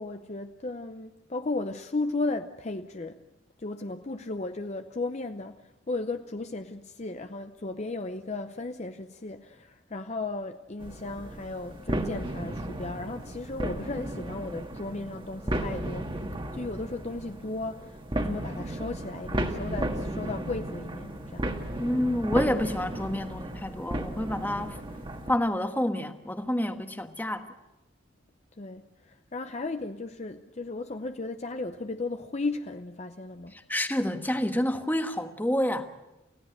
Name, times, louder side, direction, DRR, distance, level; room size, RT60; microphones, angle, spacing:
voice 1, 0.0-3.2 3.6-16.2 16.5-21.6 28.6-33.5, left 2 dB, 35° left, 0.7 m, -35 dB
sound 1, 10.8-25.3, right 1 dB, 25° right, 1.8 m, -34 dB
voice 2, 21.7-24.8 25.3-27.5 33.5-35.9, left 1 dB, 10° left, 1.4 m, -28 dB
29.0 x 16.0 x 7.9 m
head